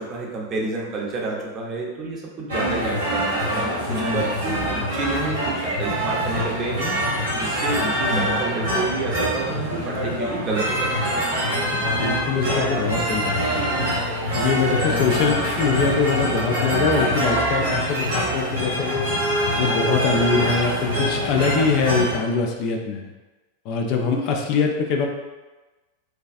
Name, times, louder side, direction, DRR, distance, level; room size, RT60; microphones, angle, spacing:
voice 1, 0.0-7.0 7.3-11.2, right 3 dB, 30° right, -2 dB, 0.7 m, -29 dB
sound 1, 2.5-22.2, equal, 65° right, 0.9 m, -24 dB
voice 2, 3.9-4.8 7.7-8.2 11.7-13.9 14.3-19.1 19.6-23.1 23.7-25.1, left 5 dB, 40° left, 2 dB, 0.3 m, -23 dB
3.2 x 2.3 x 2.5 m, 1.2 s
figure-of-eight pair, 90°, 0 cm